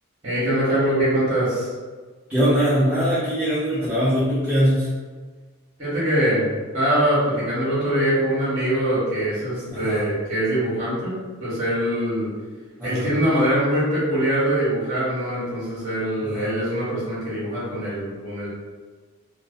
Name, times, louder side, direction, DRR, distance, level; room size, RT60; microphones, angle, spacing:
voice 1, 0.2-1.7 5.8-6.4 6.7-12.3 12.8-18.5, right 1 dB, 30° right, -10 dB, 1.0 m, -23 dB
voice 2, 2.3-4.9 9.7-10.0 12.8-13.1 16.3-16.5, equal, 10° right, -11 dB, 0.4 m, -21 dB
2.6 x 2.0 x 2.4 m, 1.4 s
head